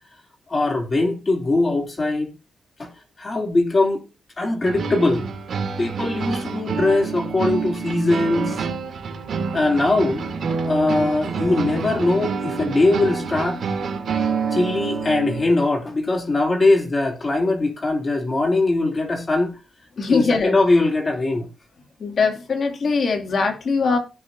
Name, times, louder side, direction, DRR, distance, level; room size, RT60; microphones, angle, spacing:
voice 1, 0.5-2.3 2.8-2.9 3.2-4.0 4.4-5.3 5.8-8.6 9.5-10.3 10.6-13.6 14.5-19.6 20.1-21.5, left 2 dB, 35° left, 2.8 m, -21 dB
sound 1, 4.6-15.5, right 5 dB, 70° right, 2.2 m, -27 dB
voice 2, 20.0-20.6 22.0-24.0, left 4 dB, 60° left, 2.5 m, -21 dB
16.5 x 6.3 x 2.7 m
cardioid pair, 70°, 0 cm